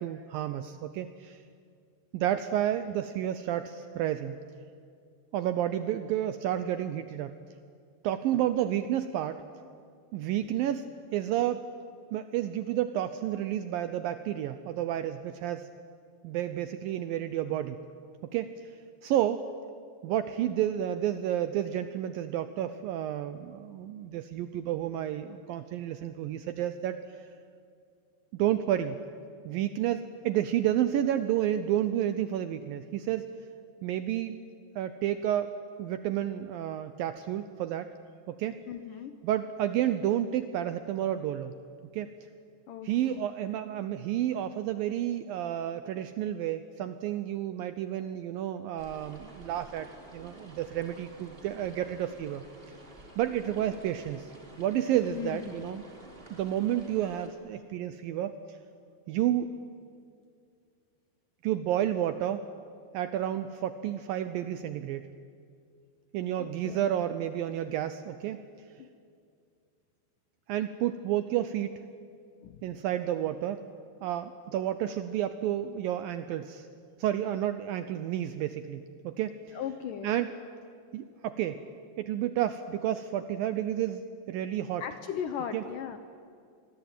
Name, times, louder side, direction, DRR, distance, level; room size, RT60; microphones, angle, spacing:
voice 1, 0.0-1.4 2.1-4.4 5.3-7.4 8.0-9.4 10.1-11.6 12.1-15.7 16.2-17.8 18.2-18.7 19.0-19.4 20.0-27.2 28.3-29.0 29.4-33.3 33.8-34.4 34.8-37.9 38.3-38.6 39.2-41.5 41.9-42.1 42.8-49.9 50.1-52.4 53.2-54.3 54.6-55.8 56.3-58.6 59.1-59.6 61.4-62.5 62.9-65.1 66.1-68.4 70.5-71.8 72.6-73.6 74.0-76.7 77.0-79.6 80.0-80.3 80.9-81.6 82.0-84.8 85.5-85.6, right 11 dB, 80° right, 11 dB, 2.1 m, -31 dB
voice 2, 38.7-39.2 42.7-43.2 53.4-53.8 55.1-55.8 66.4-66.9 68.8-68.9 72.4-72.6 79.5-80.1 84.8-86.0, left 9 dB, 70° left, 9 dB, 2.1 m, -38 dB
sound 1, 48.8-57.3, right 1 dB, 15° right, 2.6 m, -51 dB
27.0 x 20.5 x 9.0 m, 2.3 s
omnidirectional pair, 4.9 m